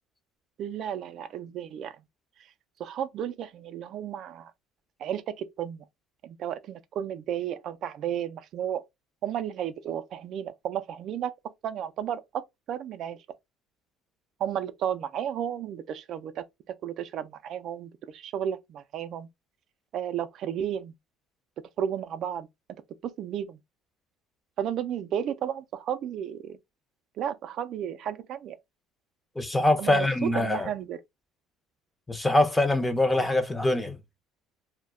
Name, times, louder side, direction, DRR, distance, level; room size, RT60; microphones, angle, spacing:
voice 1, 0.6-2.0 2.8-4.5 5.0-5.8 6.2-8.8 9.2-11.3 11.6-13.2 14.4-19.3 19.9-20.9 21.8-22.5 23.0-23.6 24.6-26.6 27.2-28.6 29.8-30.1 30.4-31.0, right 9 dB, 60° right, 0.3 m, -33 dB
voice 2, 29.4-30.7 32.1-34.0, left 2 dB, 10° left, 0.5 m, -24 dB
2.2 x 2.1 x 3.5 m
supercardioid pair, 85°, 0 cm